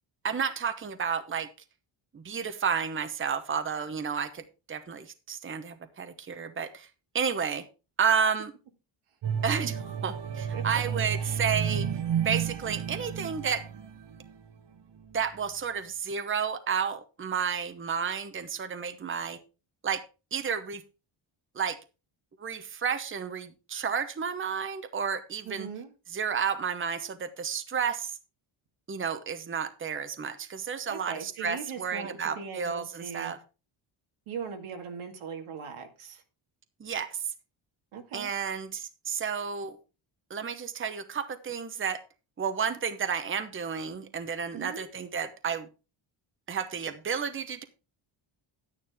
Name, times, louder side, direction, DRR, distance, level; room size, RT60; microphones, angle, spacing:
voice 1, 0.2-1.5 2.1-6.9 7.1-7.6 8.0-8.5 9.4-11.9 12.2-13.6 15.1-19.4 19.8-20.0 20.3-20.8 21.5-21.8 22.4-25.7 26.1-28.2 28.9-33.4 36.8-37.3 38.1-39.8 40.3-42.0 42.4-45.7 46.5-47.6, right 6 dB, 25° right, 9 dB, 0.9 m, -31 dB
sound 1, 9.2-14.5 15.0-15.2, right 8 dB, 55° right, 1.3 m, -32 dB
voice 2, 25.4-25.9 30.9-33.3 34.3-36.2 37.9-38.3 44.5-44.8, right 6 dB, 90° right, 4 dB, 2.2 m, -40 dB
10.5 x 9.7 x 3.6 m, 0.31 s
cardioid pair, 135°, 49 cm